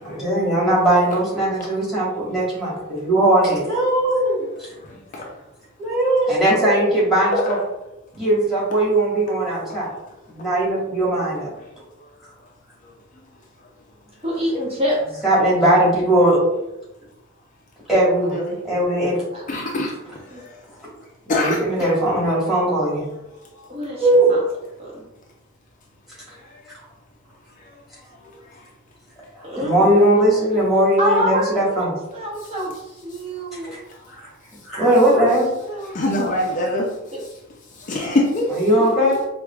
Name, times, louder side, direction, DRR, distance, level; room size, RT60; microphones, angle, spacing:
voice 1, 0.0-4.7 5.8-7.6 8.2-9.9 10.3-11.5 15.2-16.4 17.9-18.4 18.6-19.1 19.7-19.8 21.3-23.1 24.0-24.3 29.3-31.9 33.7-33.8 34.7-35.5 38.5-39.3, right 1 dB, ahead, -7 dB, 1.3 m, -19 dB
voice 2, 14.2-15.0 19.3-19.4 20.3-20.4 23.7-24.4 24.8-25.0 29.4-30.2 31.0-31.9 32.1-32.7 33.0-33.7 34.7-34.9 35.1-35.3 35.7-36.0 37.1-37.2, equal, 30° right, -3 dB, 0.6 m, -26 dB
voice 3, 19.5-19.9 21.3-21.6 36.0-36.9 37.9-38.5, left 1 dB, 40° left, -1 dB, 0.4 m, -21 dB
4.7 x 2.3 x 2.2 m, 0.92 s
head